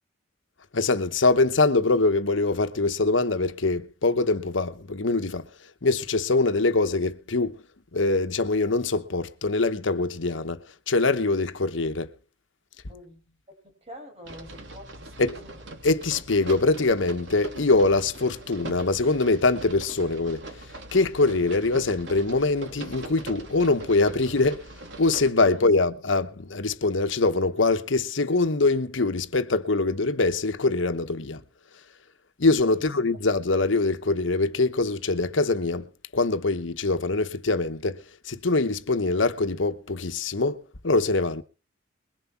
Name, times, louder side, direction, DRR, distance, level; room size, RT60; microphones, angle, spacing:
voice 1, 0.7-5.4 5.8-7.6 7.9-10.6 10.9-12.1 15.2-15.3 15.8-20.4 20.9-24.6 25.0-31.4 32.4-35.9 36.1-38.0 38.3-41.4, left 3 dB, 80° left, 1.1 m, -23 dB
voice 2, 12.9-13.2 13.5-15.6 25.4-25.6 32.7-32.9, left 1 dB, 35° right, 5.8 m, -46 dB
sound 1, 14.2-25.3, right 1 dB, 70° right, 3.2 m, -41 dB
21.5 x 7.6 x 5.8 m
head